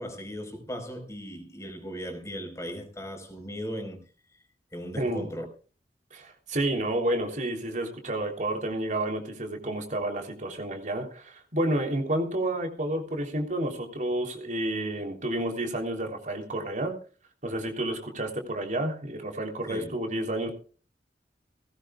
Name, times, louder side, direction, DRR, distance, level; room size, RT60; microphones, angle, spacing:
voice 1, 0.0-4.0 4.7-5.4 19.7-19.9, equal, 15° left, 4.6 m, -37 dB
voice 2, 5.0-5.3 6.1-16.9 17.4-20.5, right 1 dB, 45° right, 3.4 m, -30 dB
19.5 x 17.5 x 2.4 m
head